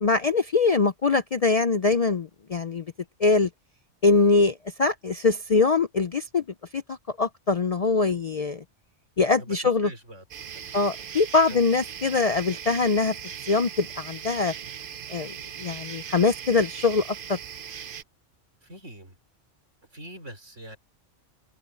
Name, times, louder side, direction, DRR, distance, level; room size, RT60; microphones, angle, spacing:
voice 1, 0.0-2.8 3.2-3.5 4.0-6.4 6.7-8.6 9.2-9.9 10.7-13.2 13.5-14.5 15.1-15.3 15.6-17.4, left 4 dB, 50° left, 0.5 m, -23 dB
voice 2, 9.4-10.2 10.5-10.7 11.5-11.6 18.6-19.2 19.9-20.8, right 1 dB, 85° right, 5.6 m, -43 dB
sound 1, 10.3-18.0, right 8 dB, 50° right, 0.8 m, -39 dB
omnidirectional pair, 1.2 m